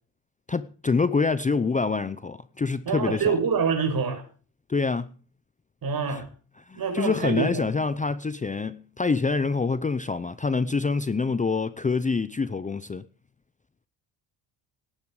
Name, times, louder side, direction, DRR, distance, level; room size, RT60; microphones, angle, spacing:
voice 1, 0.5-3.3 4.7-5.1 6.1-6.2 6.7-13.0, left 4 dB, 15° left, 0.7 m, -26 dB
voice 2, 2.9-4.2 5.8-6.3 6.7-7.7, right 5 dB, 50° right, 6.3 m, -26 dB
18.0 x 11.0 x 4.9 m
cardioid pair, 130°, 46 cm